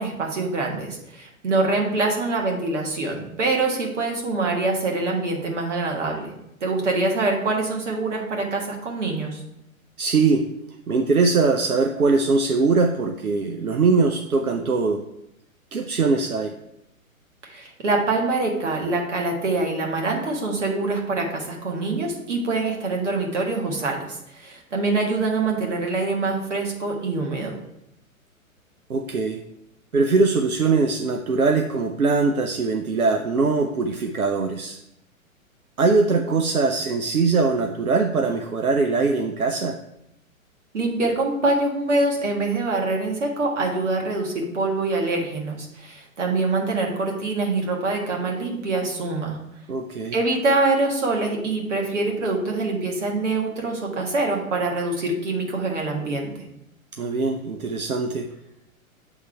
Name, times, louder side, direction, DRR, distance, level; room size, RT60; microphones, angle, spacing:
voice 1, 0.0-6.3 6.6-9.4 17.4-27.5 40.7-49.4 50.1-56.5, right 3 dB, 55° right, 0 dB, 1.7 m, -25 dB
voice 2, 10.0-10.5 10.9-15.0 15.7-16.5 28.9-29.4 29.9-34.8 35.8-39.8 49.7-50.2 56.9-58.3, right 4 dB, 85° right, 5 dB, 0.6 m, -21 dB
8.0 x 3.6 x 4.6 m, 0.83 s
figure-of-eight pair, 115°, 42 cm